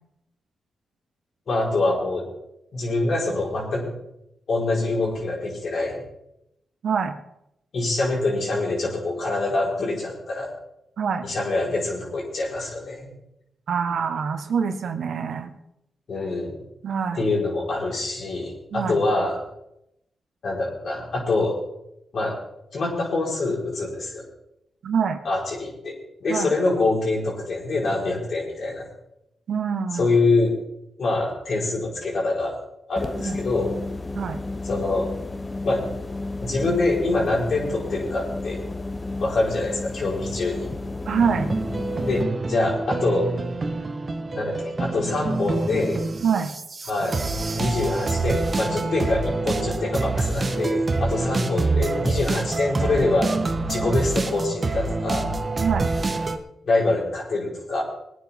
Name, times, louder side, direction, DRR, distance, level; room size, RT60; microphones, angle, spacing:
voice 1, 1.5-2.3 2.7-3.9 4.5-6.0 7.7-10.5 11.2-13.1 16.1-16.6 17.2-19.4 20.4-21.6 22.1-22.4 22.7-24.2 25.2-25.9 26.2-28.9 29.9-30.5 31.0-32.6 32.9-33.7 34.6-35.1 35.6-35.8 36.4-38.6 39.2-40.7 42.1-43.3 44.3-46.0 46.9-47.2 47.5-53.3 53.7-55.3 56.6-57.8, left 2 dB, 65° left, -3 dB, 4.5 m, -25 dB
voice 2, 6.8-7.1 11.0-11.2 13.7-15.5 16.8-17.2 18.7-19.0 24.8-25.2 26.3-26.5 29.5-30.1 33.2-33.4 34.1-34.4 41.1-41.5 46.2-46.5 55.6-55.9, right 6 dB, 70° right, 7 dB, 1.4 m, -25 dB
sound 1, 33.0-42.2, left 2 dB, 30° left, 0.9 m, -32 dB
sound 2, 41.2-56.4, right 3 dB, 40° right, 1.3 m, -26 dB
20.5 x 9.6 x 3.7 m, 0.82 s
supercardioid pair, 50°, 0 cm